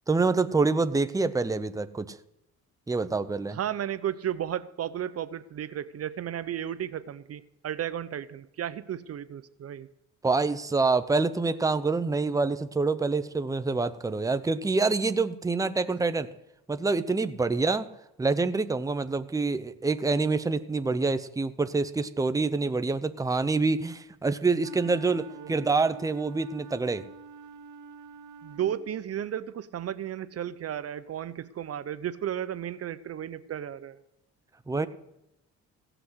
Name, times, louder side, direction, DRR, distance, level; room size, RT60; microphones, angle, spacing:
voice 1, 0.1-2.2 2.9-3.6 10.2-16.3 16.7-17.9 18.2-27.0 34.7-34.9, right 3 dB, 10° right, 11 dB, 0.8 m, -26 dB
voice 2, 3.5-9.9 25.4-25.5 28.4-34.0, right 10 dB, 55° right, 15 dB, 0.7 m, -34 dB
Wind instrument woodwind instrument, 24.5-29.1, right 5 dB, 70° right, 1.1 m, -47 dB
16.5 x 6.0 x 8.0 m, 0.88 s
cardioid pair, 90°, 30 cm